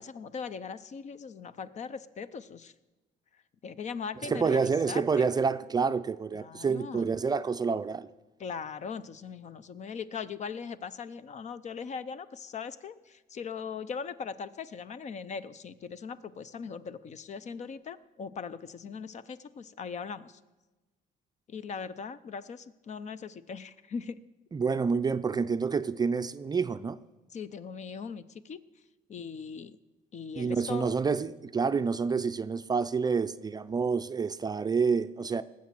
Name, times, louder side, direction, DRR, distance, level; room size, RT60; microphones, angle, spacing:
voice 1, 0.0-2.7 3.6-5.3 6.3-7.1 8.4-20.4 21.5-24.2 27.3-28.6 29.1-29.8 30.1-30.9, left 6 dB, 45° left, 0.7 m, -40 dB
voice 2, 4.2-8.1 24.5-27.0 30.3-35.4, right 5 dB, 25° right, 0.5 m, -28 dB
19.0 x 7.4 x 7.5 m
cardioid pair, 110°, 17 cm